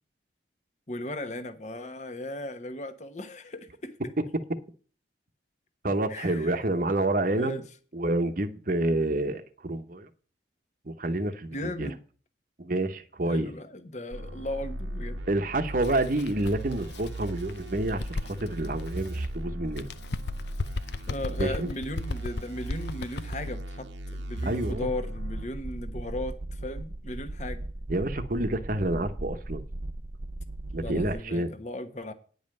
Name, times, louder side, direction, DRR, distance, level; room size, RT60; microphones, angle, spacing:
voice 1, 0.9-3.9 6.1-6.6 7.4-7.6 11.5-12.0 13.3-15.2 21.1-27.6 30.8-32.1, left 1 dB, 40° left, 1.2 m, -36 dB
voice 2, 5.8-7.6 7.9-10.1 10.9-11.9 12.6-13.5 15.3-19.9 21.4-21.7 24.4-24.9 27.9-29.6 30.7-31.5, right 2 dB, 45° right, 1.0 m, -28 dB
sound 1, 14.1-25.5, right 1 dB, 85° right, 1.1 m, -37 dB
Bird, 15.7-19.3 19.7-23.5, left 3 dB, 65° left, 0.6 m, -36 dB
sound 2, 25.2-31.2, right 2 dB, 30° right, 0.5 m, -37 dB
9.9 x 5.4 x 7.8 m
head